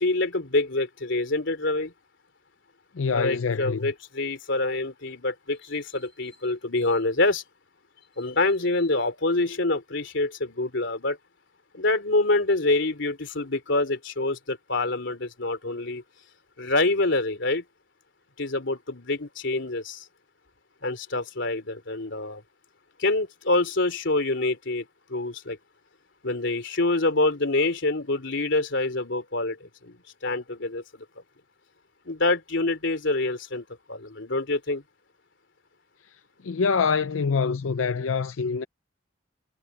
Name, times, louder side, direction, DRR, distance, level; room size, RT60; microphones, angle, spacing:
voice 1, 0.0-1.9 3.1-7.4 8.2-11.2 11.7-16.0 16.6-17.6 18.4-20.1 20.8-22.4 23.0-25.6 26.2-30.0 30.2-31.1 32.1-34.8, left 2 dB, 65° left, 3.5 m, -26 dB
voice 2, 2.9-3.9 36.4-38.6, left 5 dB, 90° left, 0.5 m, -25 dB
head